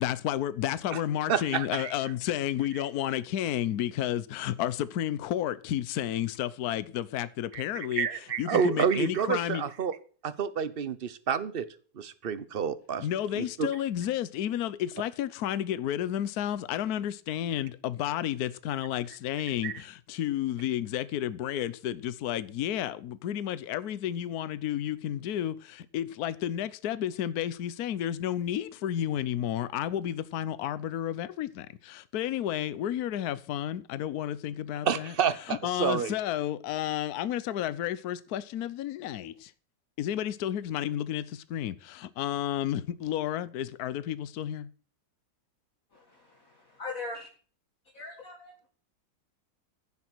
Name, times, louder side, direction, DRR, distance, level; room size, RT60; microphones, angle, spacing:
voice 1, 0.0-9.7 13.0-39.5 40.0-44.7, left 11 dB, 60° left, 1.2 m, -31 dB
voice 2, 1.3-1.9 7.5-7.6 7.9-10.0 10.2-11.7 11.9-13.1 13.4-13.7 19.6-19.7 34.8-36.1, right 7 dB, 40° right, 0.8 m, -29 dB
voice 3, 45.9-47.3 47.9-48.7, left 3 dB, 45° left, 2.5 m, -41 dB
15.5 x 7.2 x 6.2 m
omnidirectional pair, 2.0 m